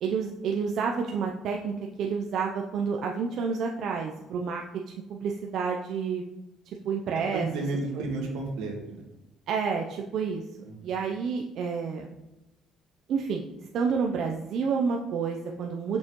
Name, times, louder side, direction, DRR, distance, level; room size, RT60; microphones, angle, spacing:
voice 1, 0.0-4.6 5.1-6.2 6.8-7.5 9.5-10.4 10.8-12.1 13.1-13.5 13.7-16.0, right 5 dB, 65° right, 1 dB, 0.5 m, -29 dB
voice 2, 7.1-9.0 10.6-10.7, right 2 dB, 90° right, 1 dB, 1.5 m, -32 dB
6.4 x 5.5 x 3.0 m, 0.97 s
cardioid pair, 105°, 0 cm